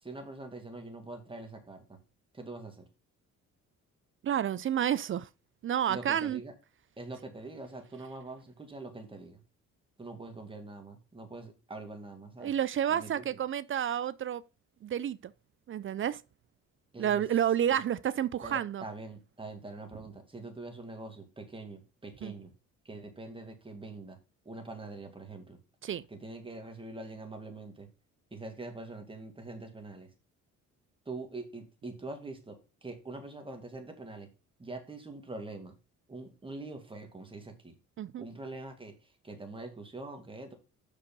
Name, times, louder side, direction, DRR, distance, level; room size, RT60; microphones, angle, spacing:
voice 1, 0.0-2.0 2.3-2.9 5.9-6.5 7.0-9.4 10.0-12.5 12.9-13.4 16.9-17.2 17.7-17.8 18.4-22.5 22.8-24.2 24.5-25.6 26.1-27.9 28.3-30.1 31.1-34.3 34.6-35.8 36.1-37.7 38.2-40.5, right 2 dB, 15° right, 2.1 m, -44 dB
voice 2, 4.2-5.3 5.6-6.4 12.4-14.4 14.8-15.3 15.7-16.2 17.0-18.8 22.2-22.3 25.8-26.0 38.0-38.2, right 10 dB, 45° right, 0.4 m, -30 dB
6.3 x 5.4 x 5.3 m
cardioid pair, 90°, 30 cm